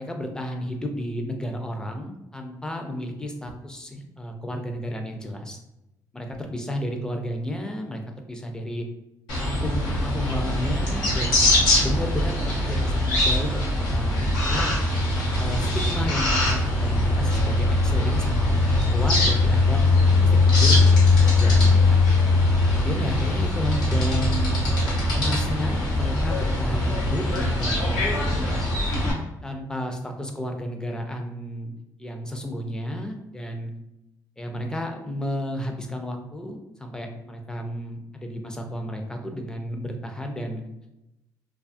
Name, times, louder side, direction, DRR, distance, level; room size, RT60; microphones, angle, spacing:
voice 1, 0.0-5.6 6.1-8.0 8.3-8.8 9.4-14.7 15.3-22.4 22.7-24.6 25.1-28.5 29.2-33.7 34.4-40.6, equal, 10° left, 3 dB, 0.4 m, -32 dB
sound 1, 9.3-29.1, left 2 dB, 90° left, 0.9 m, -21 dB
2.6 x 2.3 x 2.5 m, 0.92 s
cardioid pair, 105°, 7 cm